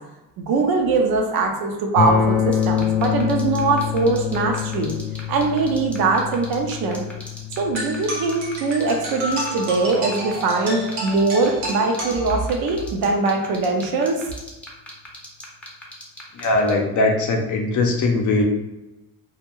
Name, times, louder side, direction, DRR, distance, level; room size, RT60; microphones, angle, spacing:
voice 1, 0.4-4.9 5.3-7.0 7.5-14.2, right 3 dB, 60° right, 2 dB, 0.6 m, -21 dB
sound 1, 2.0-11.9, left 8 dB, 85° left, 0.7 m, -27 dB
sound 2, 2.5-16.7, left 1 dB, 5° left, 0.6 m, -38 dB
sound 3, 7.8-12.8, right 1 dB, 90° right, 1.0 m, -31 dB
voice 2, 16.3-18.4, left 2 dB, 45° left, 1 dB, 0.6 m, -20 dB
2.3 x 2.1 x 2.9 m, 0.98 s
supercardioid pair, 90°, 42 cm